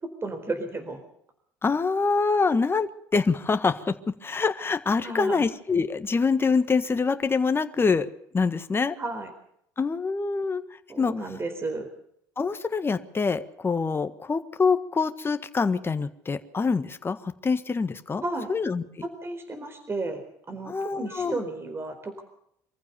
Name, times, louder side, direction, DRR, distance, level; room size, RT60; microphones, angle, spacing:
voice 1, 0.2-1.0 5.0-5.4 9.0-9.3 10.9-11.9 18.2-18.5 19.0-20.2 20.5-22.2, right 2 dB, 25° right, 7 dB, 4.2 m, -33 dB
voice 2, 1.6-4.0 4.2-8.1 8.3-8.9 9.8-10.6 11.0-11.1 12.4-18.2 18.5-18.8 20.7-21.4, left 4 dB, 25° left, 9 dB, 1.6 m, -25 dB
25.0 x 15.0 x 7.0 m, 0.71 s
hypercardioid pair, 65°, 9 cm